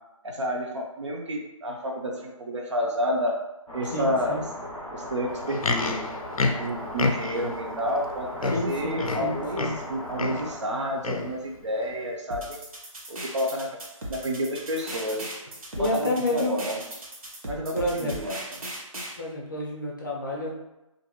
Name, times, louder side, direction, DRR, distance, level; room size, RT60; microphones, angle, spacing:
voice 1, 0.2-3.4 3.7-4.4 4.9-6.0 6.6-9.6 9.9-12.6 13.1-13.8 14.1-15.3 15.8-16.8 17.4-18.4, equal, 55° right, 0 dB, 0.6 m, -30 dB
sound 1, 3.7-10.6, left 1 dB, 10° right, 0.6 m, -37 dB
voice 2, 3.9-4.4 8.5-9.7 15.8-16.6 17.7-18.2 19.2-20.5, left 1 dB, 35° left, -1 dB, 0.5 m, -29 dB
Livestock farm animals working animals, 5.3-7.5 8.1-8.2 8.4-9.9 10.2-10.5 11.0-11.4 12.0-12.1, left 3 dB, 85° left, 0.4 m, -29 dB
sound 2, 12.3-19.1, right 1 dB, 80° right, 0.9 m, -38 dB
2.6 x 2.2 x 2.8 m, 0.94 s
figure-of-eight pair, 165°, 18 cm